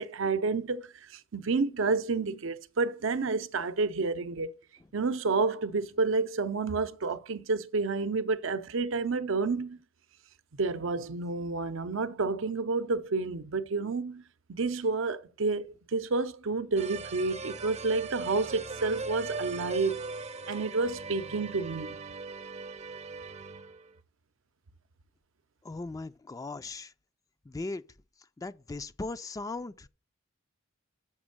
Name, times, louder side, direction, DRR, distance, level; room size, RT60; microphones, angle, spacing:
voice 1, 0.0-4.5 4.9-9.8 10.6-14.2 14.5-20.0 20.5-22.0, right 3 dB, 75° right, 0.6 m, -30 dB
sound 1, 16.8-23.9, right 3 dB, 35° right, 0.6 m, -40 dB
voice 2, 25.6-26.9 27.5-27.8 28.4-29.9, left 3 dB, 15° left, 0.3 m, -38 dB
7.2 x 5.2 x 6.4 m
head